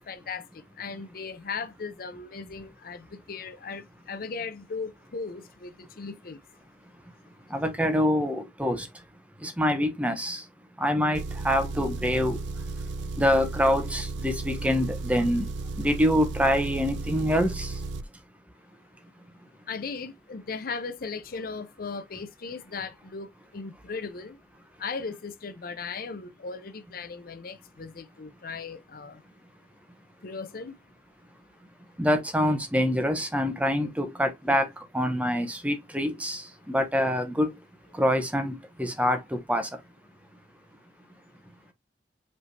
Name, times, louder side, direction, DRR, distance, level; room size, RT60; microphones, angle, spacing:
voice 1, 0.1-6.4 19.7-24.4 24.8-29.2 30.2-30.8, left 4 dB, 55° left, 0.6 m, -37 dB
voice 2, 7.5-9.0 9.4-10.5 10.8-12.7 13.2-17.8 32.0-37.6 37.9-39.8, equal, 10° right, 0.7 m, -26 dB
Engine, 11.2-18.1, right 3 dB, 75° right, 0.4 m, -34 dB
5.2 x 3.3 x 2.6 m
head